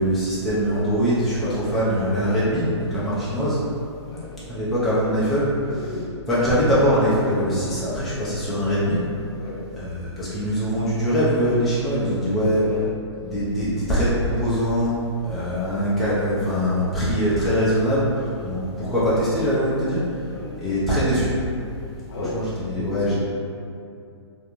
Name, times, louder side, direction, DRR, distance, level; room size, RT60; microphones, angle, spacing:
voice 1, 0.0-3.6 4.5-5.5 5.8-5.9 6.3-9.0 9.7-12.6 13.2-14.9 15.2-20.0 20.6-21.3 22.3-23.1, equal, ahead, -12 dB, 0.4 m, -22 dB
voice 2, 4.1-4.4 5.6-6.1 9.3-9.6 12.5-12.8 20.2-20.6 22.1-22.4 22.9-23.1, left 3 dB, 55° left, -5 dB, 0.7 m, -34 dB
2.5 x 2.1 x 2.9 m, 2.5 s
hypercardioid pair, 135°, 15 cm